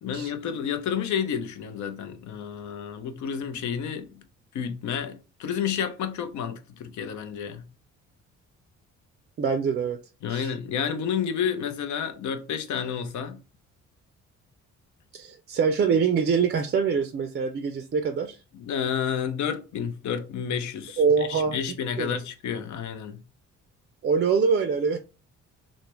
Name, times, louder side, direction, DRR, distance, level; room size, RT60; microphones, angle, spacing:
voice 1, 0.0-4.2 4.5-7.7 10.2-13.4 18.5-23.2, left 7 dB, 70° left, 0.6 m, -30 dB
voice 2, 9.4-10.0 10.3-10.5 15.1-18.4 21.0-21.6 22.0-22.2 24.0-25.0, right 5 dB, 35° right, 0.4 m, -24 dB
3.3 x 2.1 x 2.9 m
cardioid pair, 90°, 30 cm